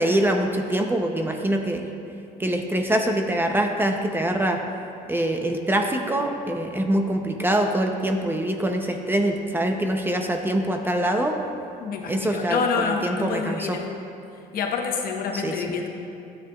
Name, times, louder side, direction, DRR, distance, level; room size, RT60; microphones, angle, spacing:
voice 1, 0.0-1.9 2.4-4.6 5.1-11.3 12.1-13.8 15.3-15.7, right 1 dB, 10° right, 3 dB, 0.6 m, -24 dB
voice 2, 11.8-13.8 14.5-15.9, left 5 dB, 60° left, 2 dB, 1.0 m, -27 dB
11.5 x 8.3 x 2.3 m, 2.6 s
cardioid pair, 110°, 17 cm